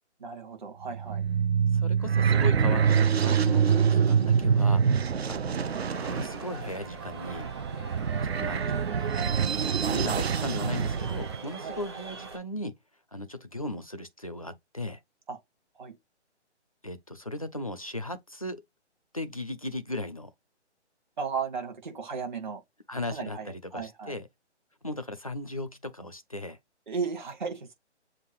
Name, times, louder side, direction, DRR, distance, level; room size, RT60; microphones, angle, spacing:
voice 1, 0.2-1.2 11.6-11.8 15.3-15.4 15.8-15.9 21.2-22.6 23.1-24.2 26.9-27.7, right 5 dB, 40° right, 1.8 m, -35 dB
sound 1, 0.8-11.4, right 7 dB, 60° right, 0.6 m, -25 dB
voice 2, 1.7-4.8 5.3-5.6 6.0-7.5 8.2-8.7 9.1-12.7 13.1-15.0 16.8-18.6 19.1-20.3 22.9-24.3 24.8-26.6, left 1 dB, 30° left, 0.4 m, -37 dB
sound 2, 5.6-12.4, right 4 dB, 20° right, 1.0 m, -42 dB
7.1 x 2.5 x 3.0 m
hypercardioid pair, 175°, 35 cm